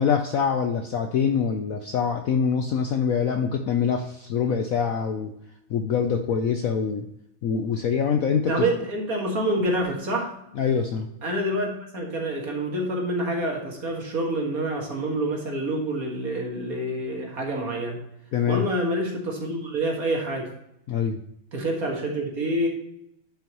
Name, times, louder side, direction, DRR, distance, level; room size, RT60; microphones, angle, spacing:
voice 1, 0.0-5.3 5.7-7.1 7.4-8.6 10.6-11.1 18.3-18.6 20.9-21.2, left 6 dB, 75° left, 5 dB, 0.7 m, -24 dB
voice 2, 8.5-10.3 11.2-11.7 11.9-18.0 18.5-20.5 21.5-22.7, right 1 dB, 45° right, 0 dB, 2.0 m, -27 dB
11.5 x 5.6 x 3.0 m, 0.80 s
omnidirectional pair, 2.2 m